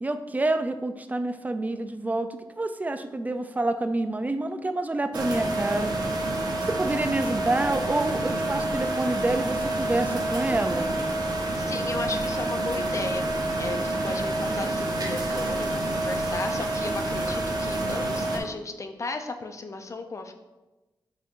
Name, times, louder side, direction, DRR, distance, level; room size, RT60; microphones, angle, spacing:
voice 1, 0.0-5.9 6.6-10.9, right 2 dB, 20° right, 9 dB, 0.4 m, -28 dB
sound 1, 5.1-18.4, right 2 dB, 55° right, 0.8 m, -28 dB
voice 2, 11.6-20.3, left 3 dB, 40° left, 6 dB, 0.5 m, -35 dB
7.4 x 2.9 x 2.5 m, 1.1 s
cardioid pair, 70°, 8 cm